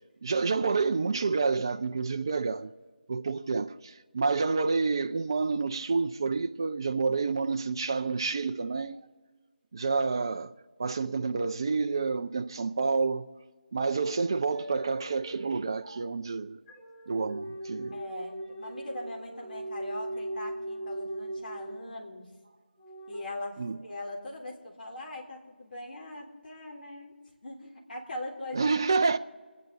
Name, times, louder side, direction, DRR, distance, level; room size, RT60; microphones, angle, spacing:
voice 1, 0.2-2.7 3.1-9.0 9.7-10.5 10.8-13.3 13.7-16.6 17.1-18.0 23.6-23.8 28.5-29.2, right 4 dB, 25° right, 0.4 m, -29 dB
voice 2, 7.1-7.5 17.9-22.3 23.1-27.1 27.4-28.7, left 1 dB, 50° left, 3.6 m, -41 dB
sound 1, 14.5-22.0 22.8-23.2, right 1 dB, 10° left, 0.9 m, -40 dB
26.5 x 9.6 x 3.9 m
figure-of-eight pair, 170°, 6 cm